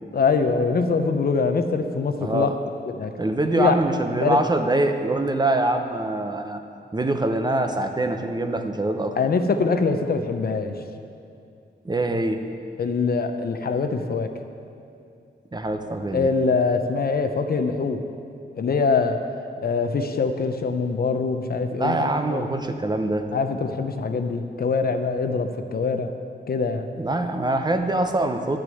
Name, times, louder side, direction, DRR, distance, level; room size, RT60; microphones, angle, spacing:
voice 1, 0.1-2.5 2.9-3.1 3.5-3.7 4.2-4.4 9.2-10.7 12.8-14.3 16.1-18.0 18.5-19.2 19.6-22.5 23.3-26.1 26.5-26.9, left 4 dB, 60° left, 7 dB, 0.7 m, -23 dB
voice 2, 2.2-2.5 3.2-6.6 6.9-9.1 11.8-12.4 15.5-16.3 21.7-23.3 27.0-28.6, right 2 dB, 25° right, 6 dB, 0.7 m, -24 dB
12.0 x 6.3 x 7.8 m, 2.6 s
wide cardioid pair, 130°, 18 cm